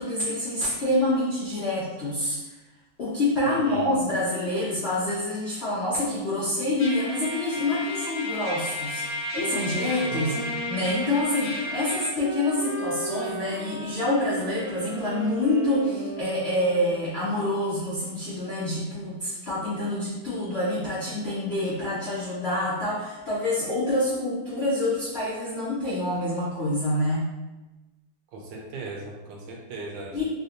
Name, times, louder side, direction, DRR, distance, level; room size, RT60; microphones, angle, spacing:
voice 1, 0.0-2.4 3.0-10.4 10.7-27.3 30.1-30.2, left 1 dB, 75° left, -9 dB, 0.5 m, -27 dB
voice 2, 3.4-3.9 10.1-10.5 28.3-30.2, right 3 dB, 75° right, 0 dB, 1.2 m, -38 dB
Trumpet, 6.8-12.1, left 1 dB, 60° left, 1.0 m, -33 dB
sound 1, 9.3-17.3, right 1 dB, 45° right, 0.6 m, -36 dB
3.2 x 2.5 x 2.8 m, 1.1 s
omnidirectional pair, 2.1 m